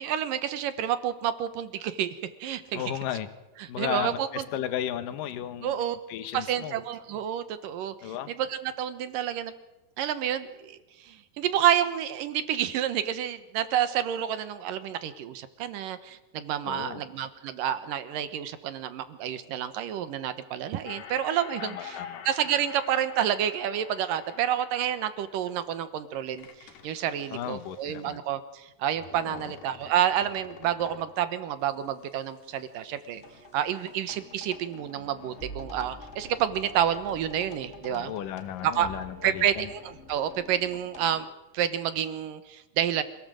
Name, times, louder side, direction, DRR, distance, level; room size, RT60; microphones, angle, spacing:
voice 1, 0.0-2.8 3.6-4.4 5.6-6.0 6.3-9.5 10.0-33.2 33.5-38.1 38.6-38.9 39.2-41.3 41.5-43.0, right 10 dB, 70° right, 12 dB, 2.6 m, -29 dB
voice 2, 2.7-3.3 3.7-5.8 6.1-6.8 8.0-8.3 16.7-17.0 21.6-22.2 27.3-28.2 29.3-29.4 37.9-39.7, left 11 dB, 65° left, 11 dB, 2.7 m, -34 dB
sound 1, 20.8-25.8 26.4-28.1 28.8-31.2 31.7-33.2 33.5-34.2, left 7 dB, 85° left, 4.0 m, -47 dB
sound 2, 33.1-41.2, left 1 dB, 25° left, 1.5 m, -46 dB
27.0 x 17.5 x 7.8 m, 1.0 s
omnidirectional pair, 4.5 m